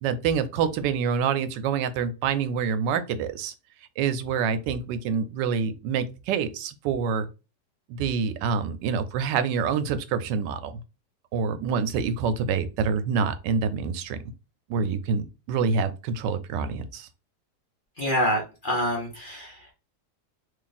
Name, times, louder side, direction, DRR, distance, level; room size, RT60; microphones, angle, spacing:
voice 1, 0.0-3.5 4.0-7.3 7.9-10.7 11.3-14.2 14.7-17.1, right 6 dB, 90° right, 1.2 m, -26 dB
voice 2, 18.0-19.7, equal, 40° left, 0.8 m, -27 dB
3.0 x 2.5 x 3.9 m
omnidirectional pair, 1.8 m